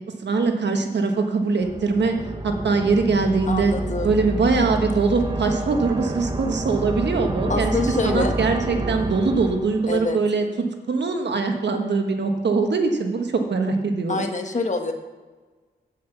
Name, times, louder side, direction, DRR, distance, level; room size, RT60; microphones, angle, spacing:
voice 1, 0.2-2.2 2.4-3.7 4.0-7.7 8.0-14.3, right 4 dB, 75° right, 4 dB, 1.4 m, -22 dB
sound 1, 1.6-10.1, right 1 dB, 25° right, 1.2 m, -29 dB
voice 2, 3.5-4.2 4.6-4.8 7.5-8.3 9.9-10.2 14.1-14.9, left 3 dB, 40° left, 4 dB, 1.5 m, -26 dB
9.0 x 7.4 x 7.0 m, 1.3 s
cardioid pair, 65°, 18 cm